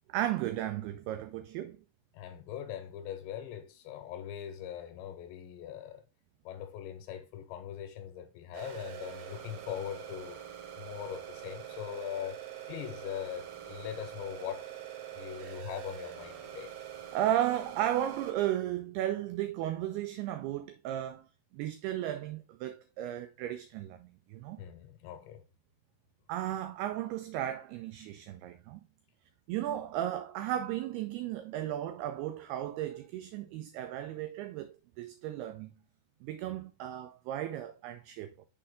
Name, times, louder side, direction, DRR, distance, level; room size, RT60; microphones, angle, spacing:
voice 1, 0.1-1.8 17.1-21.3 21.5-24.6 26.3-28.8 29.5-35.7 36.2-38.5, right 12 dB, 85° right, 2.2 m, -35 dB
voice 2, 2.1-6.0 6.5-10.4 10.8-12.4 12.7-14.7 15.1-16.7 24.6-25.4, left 10 dB, 85° left, 2.9 m, -41 dB
sound 1, 8.5-18.3, right 10 dB, 70° right, 2.9 m, -44 dB
6.4 x 4.4 x 3.5 m
omnidirectional pair, 5.1 m